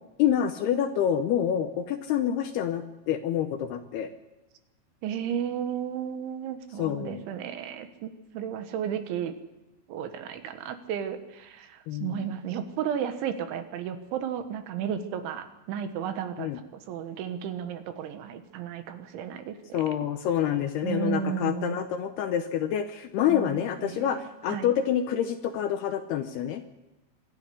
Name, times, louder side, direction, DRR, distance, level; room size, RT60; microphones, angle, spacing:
voice 1, 0.2-4.1 6.8-7.2 11.9-12.3 16.4-16.6 19.7-26.6, left 9 dB, 75° left, 7 dB, 2.5 m, -27 dB
voice 2, 5.0-9.3 9.9-16.5 16.9-19.8 20.8-21.8 23.3-24.7, right 8 dB, 80° right, 8 dB, 3.7 m, -33 dB
25.5 x 10.5 x 9.9 m, 1.0 s
omnidirectional pair, 5.5 m